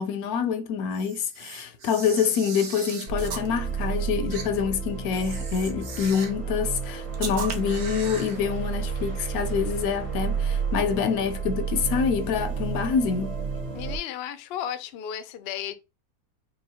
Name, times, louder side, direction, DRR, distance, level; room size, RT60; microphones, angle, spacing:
voice 1, 0.0-13.4, left 7 dB, 85° left, 1.1 m, -26 dB
Camera, 0.9-3.5 4.3-4.5 5.1-6.4 7.1-8.4, right 5 dB, 55° right, 0.7 m, -38 dB
sound 1, 3.1-14.0, right 6 dB, 85° right, 2.0 m, -31 dB
voice 2, 13.7-15.7, left 10 dB, 70° left, 0.6 m, -34 dB
4.6 x 2.2 x 2.7 m
omnidirectional pair, 1.5 m